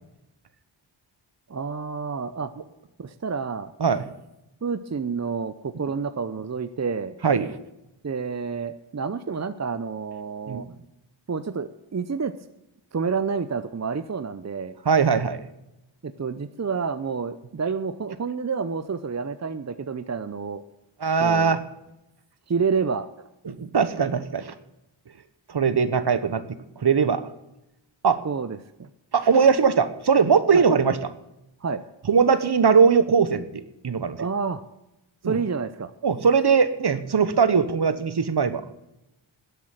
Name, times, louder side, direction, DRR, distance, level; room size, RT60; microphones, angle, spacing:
voice 1, 1.5-2.5 3.0-3.7 4.6-7.1 8.0-10.7 11.3-12.3 12.9-14.7 16.0-20.6 21.2-21.6 22.5-23.1 28.2-28.9 30.5-30.6 31.6-31.8 34.2-34.6 35.2-35.9, right 5 dB, 35° right, 11 dB, 0.7 m, -29 dB
voice 2, 14.8-15.5 21.0-21.6 23.4-24.5 25.5-26.4 26.8-27.2 28.0-28.2 29.1-31.0 32.1-34.2 35.2-35.4 36.0-38.6, right 6 dB, 55° right, 12 dB, 1.3 m, -20 dB
12.5 x 8.2 x 8.9 m, 0.88 s
cardioid pair, 60°, 47 cm